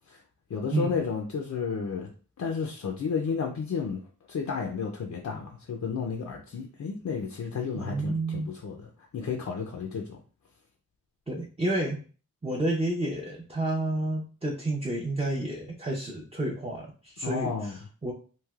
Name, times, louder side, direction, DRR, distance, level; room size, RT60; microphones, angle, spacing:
voice 1, 0.5-2.1 2.4-4.0 4.3-8.9 9.1-10.2 17.2-17.8, left 5 dB, 60° left, 0.5 m, -32 dB
voice 2, 7.7-8.5 11.3-12.0 12.4-18.1, right 1 dB, 20° right, 0.5 m, -30 dB
3.2 x 2.8 x 2.3 m
wide cardioid pair, 80°, 32 cm